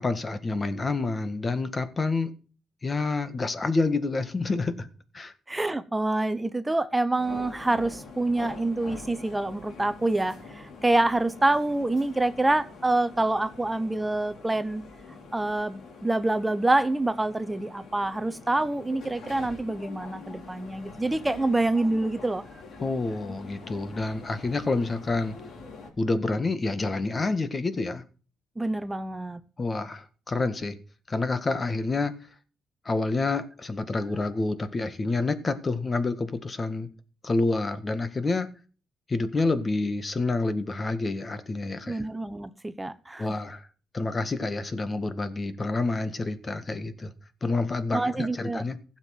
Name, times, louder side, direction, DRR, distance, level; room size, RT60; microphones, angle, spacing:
voice 1, 0.0-2.3 2.8-4.9 5.1-5.3 22.8-25.3 26.0-28.0 29.6-30.8 31.1-32.1 32.8-36.9 37.2-38.5 39.1-42.0 43.2-43.6 43.9-47.1 47.4-48.8, left 3 dB, 30° left, 1.7 m, -28 dB
voice 2, 5.5-14.8 15.3-22.4 28.6-29.4 41.9-43.3 47.9-48.6, right 2 dB, 15° right, 0.9 m, -26 dB
sound 1, 7.2-25.9, left 4 dB, 65° left, 4.3 m, -45 dB
16.0 x 7.4 x 5.9 m
cardioid pair, 90°, 0 cm